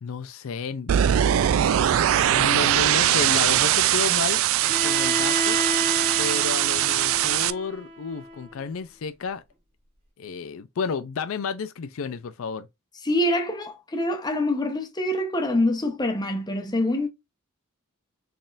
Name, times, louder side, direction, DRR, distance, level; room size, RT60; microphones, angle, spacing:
voice 1, 0.0-1.1 2.1-4.4 4.8-5.6 6.2-9.4 10.2-12.7, left 5 dB, 70° left, 0.4 m, -31 dB
sound 1, 0.9-7.5, right 11 dB, 70° right, 0.3 m, -21 dB
Bowed string instrument, 4.6-8.5, right 1 dB, 30° right, 1.4 m, -31 dB
voice 2, 13.0-17.1, left 1 dB, 20° left, 0.8 m, -25 dB
4.2 x 3.5 x 2.4 m
head